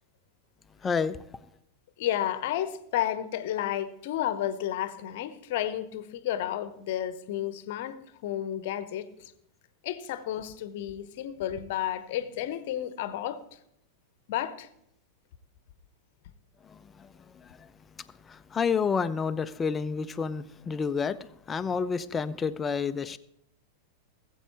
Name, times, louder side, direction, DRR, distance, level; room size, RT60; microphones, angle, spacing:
voice 1, 0.8-1.2 16.7-16.8 18.3-21.2 21.5-23.2, left 6 dB, 20° left, 0.5 m, -29 dB
voice 2, 2.0-8.0 8.2-9.1 9.8-13.4 14.3-14.7, left 11 dB, 50° left, 0.9 m, -31 dB
19.0 x 8.0 x 4.5 m
figure-of-eight pair, 90°, 0 cm